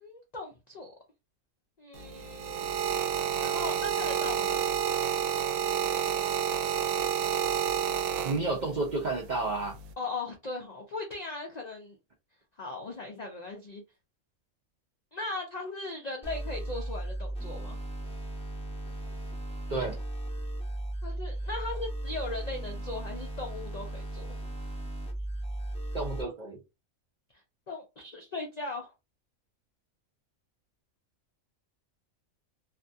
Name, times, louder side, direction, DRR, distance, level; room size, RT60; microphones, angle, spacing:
voice 1, 0.0-0.9 1.8-2.7 3.4-4.6 10.0-12.0 12.6-13.8 15.1-17.8 21.0-24.3 27.7-28.9, left 2 dB, 65° left, 0.4 m, -38 dB
sound 1, 1.9-8.8 9.6-9.9, right 9 dB, 80° right, 1.0 m, -29 dB
voice 2, 8.2-9.8 19.7-20.0 25.9-26.6, right 3 dB, 50° right, 0.5 m, -31 dB
sound 2, 16.2-26.2, right 1 dB, 5° left, 0.5 m, -36 dB
2.5 x 2.3 x 2.6 m
omnidirectional pair, 1.4 m